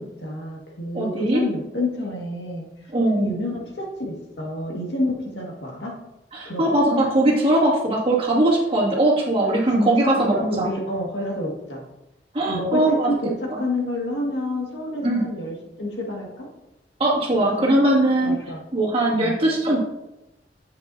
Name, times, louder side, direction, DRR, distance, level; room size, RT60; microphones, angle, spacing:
voice 1, 0.0-2.7 3.2-5.9 6.4-6.6 6.9-7.0 9.8-11.8 12.5-13.3 13.6-16.5 17.3-17.5 17.8-17.9 18.2-18.6 19.1-19.4, left 1 dB, 85° left, -1 dB, 2.0 m, -28 dB
voice 2, 0.9-1.4 2.9-3.3 6.3-10.7 12.3-13.1 15.0-15.2 17.0-18.4 18.7-19.8, right 1 dB, 35° right, -4 dB, 2.3 m, -20 dB
8.8 x 7.5 x 2.8 m, 0.93 s
head